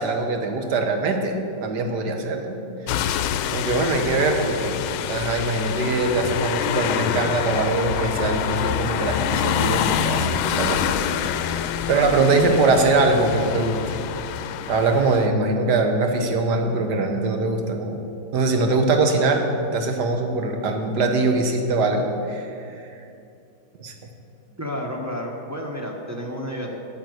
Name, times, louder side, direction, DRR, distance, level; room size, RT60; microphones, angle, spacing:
voice 1, 0.0-2.6 3.5-4.8 5.1-10.9 11.9-13.8 14.7-18.0 18.3-19.4 19.7-22.5 23.8-23.9, right 3 dB, 55° right, 4 dB, 1.7 m, -22 dB
sound 1, 2.9-15.3, left 9 dB, 80° left, 1.4 m, -26 dB
voice 2, 24.6-26.8, equal, 15° right, 1 dB, 0.6 m, -31 dB
9.8 x 9.4 x 7.9 m, 2.6 s
omnidirectional pair, 2.3 m